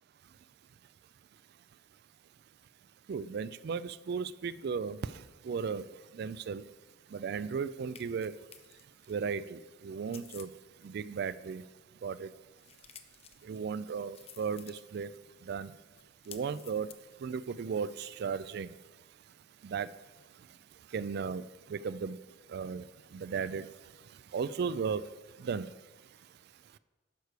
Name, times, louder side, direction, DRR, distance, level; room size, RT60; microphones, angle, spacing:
voice 1, 3.1-5.1 5.4-5.8 6.1-6.6 7.1-8.3 9.1-10.5 10.8-11.6 12.0-12.3 13.4-15.1 15.5-15.7 16.3-16.9 17.2-18.7 19.6-19.9 20.9-21.4 21.7-22.2 22.5-22.8 23.1-23.7 24.3-25.1 25.4-25.7, right 6 dB, 55° right, 16 dB, 0.3 m, -35 dB
sound 1, 6.1-18.6, left 8 dB, 30° left, 0.5 m, -58 dB
11.5 x 6.6 x 4.7 m, 1.2 s
head